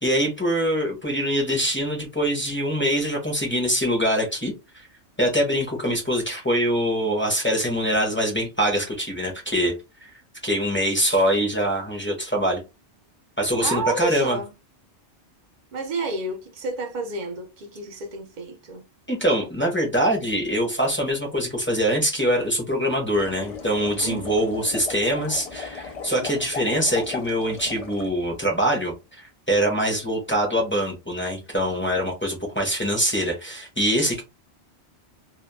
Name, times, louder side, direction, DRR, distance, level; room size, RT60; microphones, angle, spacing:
voice 1, 0.0-4.9 5.2-9.7 10.0-10.1 10.4-12.6 13.4-14.4 19.1-34.2, equal, 10° left, 0.7 m, -24 dB
voice 2, 13.6-14.5 15.7-18.8 24.0-24.6, right 3 dB, 50° right, 0.6 m, -30 dB
sound 1, 23.1-28.1, left 5 dB, 50° left, 0.4 m, -36 dB
2.8 x 2.2 x 2.2 m
omnidirectional pair, 1.2 m